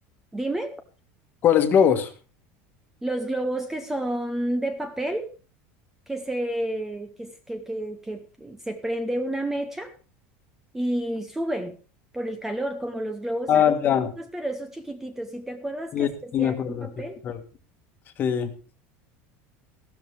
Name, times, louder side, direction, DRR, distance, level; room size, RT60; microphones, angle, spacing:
voice 1, 0.3-0.8 3.0-5.3 6.1-9.9 10.7-11.8 12.1-13.7 14.2-16.6 16.8-17.2, right 1 dB, 5° right, 8 dB, 0.8 m, -30 dB
voice 2, 1.4-2.1 13.5-14.1 15.9-16.9 17.2-17.4 18.2-18.5, left 8 dB, 30° left, 7 dB, 1.5 m, -21 dB
14.5 x 12.5 x 3.5 m, 0.34 s
cardioid pair, 160°, 6 cm